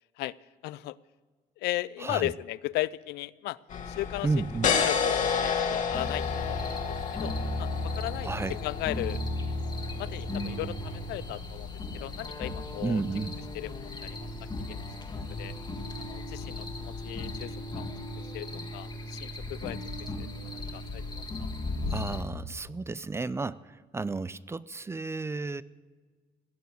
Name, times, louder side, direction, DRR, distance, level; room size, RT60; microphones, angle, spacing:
voice 1, 0.6-1.0 1.6-3.6 3.9-4.3 4.6-9.2 9.9-13.0 13.5-14.3 14.7-14.8 15.4-15.5 16.0-17.9 18.2-20.3 20.5-21.0 21.4-21.5, left 17 dB, 80° left, 20 dB, 0.4 m, -36 dB
voice 2, 2.0-2.3 4.2-4.7 8.2-8.6 12.8-13.4 21.9-25.6, right 3 dB, 15° right, 19 dB, 0.4 m, -32 dB
sound 1, 3.7-17.3, left 6 dB, 50° left, 1.9 m, -34 dB
sound 2, 5.9-22.2, left 2 dB, 25° left, 1.7 m, -36 dB
16.5 x 6.8 x 9.4 m, 1.4 s
cardioid pair, 110°, 17 cm